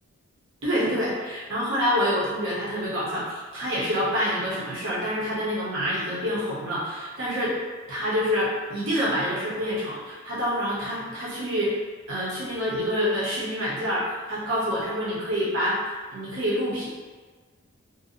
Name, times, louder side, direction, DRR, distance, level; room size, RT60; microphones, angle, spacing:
voice 1, 0.6-7.6 7.9-11.8 12.1-15.8 16.1-16.9, equal, 70° right, -7 dB, 0.7 m, -27 dB
2.6 x 2.0 x 2.6 m, 1.4 s
head